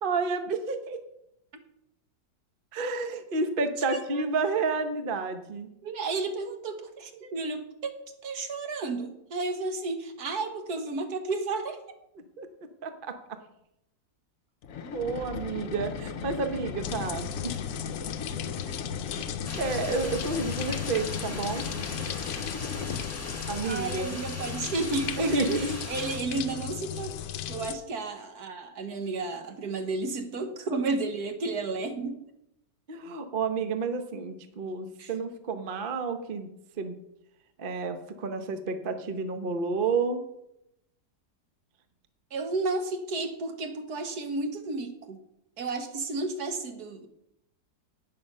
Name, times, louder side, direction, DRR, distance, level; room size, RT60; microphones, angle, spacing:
voice 1, 0.0-1.0 2.7-5.7 12.4-12.5 12.8-13.2 14.9-17.6 19.1-19.2 19.6-21.6 23.5-24.2 25.2-25.8 32.9-36.5 36.8-36.9 37.6-40.2, right 4 dB, 40° right, 8 dB, 0.9 m, -30 dB
voice 2, 3.9-4.2 5.8-8.0 8.2-11.8 23.6-27.1 27.5-32.2 35.0-35.1 42.3-45.2 45.6-47.1, right 3 dB, 60° right, 7 dB, 1.6 m, -32 dB
sound 1, 14.6-23.7, left 6 dB, 60° left, 1.1 m, -37 dB
sound 2, 16.8-27.7, left 9 dB, 85° left, 1.4 m, -37 dB
sound 3, 19.4-26.2, left 1 dB, 10° left, 1.3 m, -41 dB
11.0 x 8.7 x 5.4 m, 0.82 s
omnidirectional pair, 1.9 m